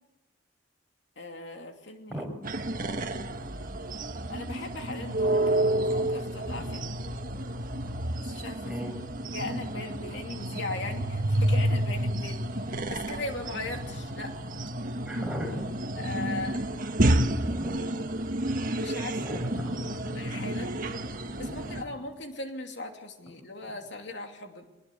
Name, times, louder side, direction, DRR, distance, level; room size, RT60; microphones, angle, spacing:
voice 1, 1.2-2.2 4.3-5.4 5.9-6.9 8.2-9.0 9.3-14.4 16.0-16.6 18.7-19.2 19.7-20.7 21.4-24.6, left 2 dB, 70° left, 3 dB, 2.7 m, -39 dB
sound 1, 2.4-21.8, right 1 dB, 45° right, 1.5 m, -30 dB
voice 2, 15.0-15.6 17.4-18.1 19.2-19.9 21.2-21.7, equal, 5° right, 0 dB, 6.6 m, -37 dB
24.5 x 20.5 x 8.3 m, 1.1 s
head